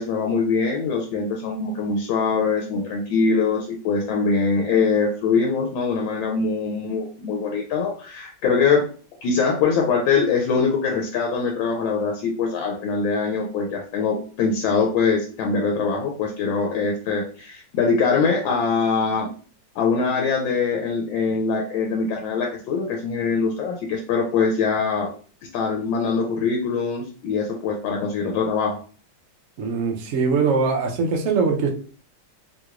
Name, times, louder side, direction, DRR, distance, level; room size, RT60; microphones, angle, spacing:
voice 1, 0.0-8.8 9.2-19.3 19.8-25.1 25.5-28.8, left 5 dB, 80° left, 1 dB, 1.3 m, -23 dB
voice 2, 29.6-31.7, right 4 dB, 75° right, 2 dB, 0.7 m, -22 dB
3.2 x 2.9 x 2.4 m, 0.42 s
omnidirectional pair, 2.1 m